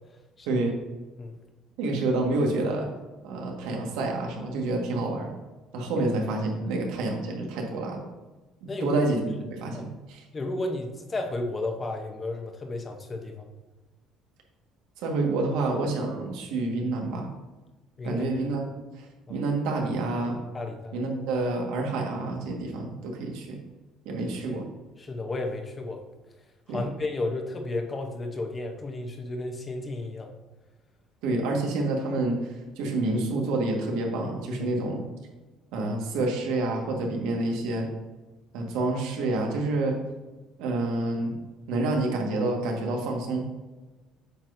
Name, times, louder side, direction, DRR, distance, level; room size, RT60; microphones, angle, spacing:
voice 1, 1.8-2.9 3.2-5.3 5.7-8.0 8.6-9.2 9.5-10.2 15.0-17.3 18.0-18.6 19.0-20.4 20.9-23.6 24.0-24.7 26.7-26.8 31.2-35.0 35.7-37.9 38.5-40.0 40.6-41.3 41.7-43.5, right 2 dB, 85° right, 1 dB, 1.5 m, -28 dB
voice 2, 8.7-9.0 9.7-9.8 10.3-13.5 18.0-18.2 19.3-19.4 20.5-21.0 24.2-24.6 25.0-26.0 26.7-30.3 34.5-34.8, left 2 dB, 20° left, 4 dB, 0.8 m, -33 dB
8.6 x 6.0 x 2.6 m, 1.2 s
cardioid pair, 160°, 0 cm